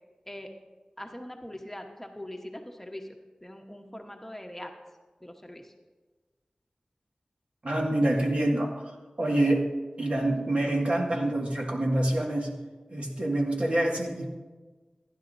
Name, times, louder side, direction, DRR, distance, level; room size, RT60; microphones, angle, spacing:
voice 1, 1.0-3.1 3.4-4.7 5.2-5.7, left 1 dB, 10° left, 3 dB, 1.1 m, -42 dB
voice 2, 7.6-8.9 9.2-9.7 10.0-12.5 12.9-14.3, right 1 dB, 60° right, -1 dB, 1.9 m, -26 dB
15.5 x 10.5 x 2.7 m, 1.3 s
wide cardioid pair, 45°, 2 cm